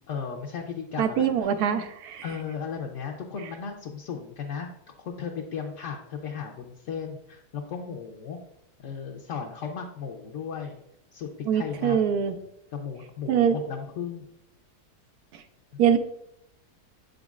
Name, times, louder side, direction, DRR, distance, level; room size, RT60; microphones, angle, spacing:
voice 1, 0.1-1.5 2.2-4.7 5.0-8.4 8.8-10.8 11.1-12.2 12.7-14.3, left 6 dB, 65° left, 0 dB, 0.8 m, -35 dB
voice 2, 1.0-2.2 11.5-12.4 13.3-13.6 15.3-15.4 15.8-16.0, right 8 dB, 75° right, 9 dB, 1.1 m, -23 dB
7.7 x 5.1 x 2.4 m, 0.77 s
omnidirectional pair, 1.7 m